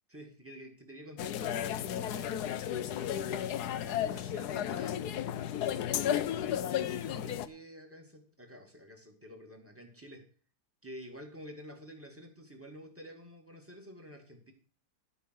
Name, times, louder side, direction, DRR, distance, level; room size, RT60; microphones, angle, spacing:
voice 1, 0.1-3.1 3.8-5.6 5.9-10.2 10.8-14.5, equal, 5° right, 2 dB, 2.1 m, -50 dB
sound 1, 1.2-7.5, left 10 dB, 65° left, 1.1 m, -33 dB
12.5 x 5.6 x 7.7 m, 0.41 s
omnidirectional pair, 2.1 m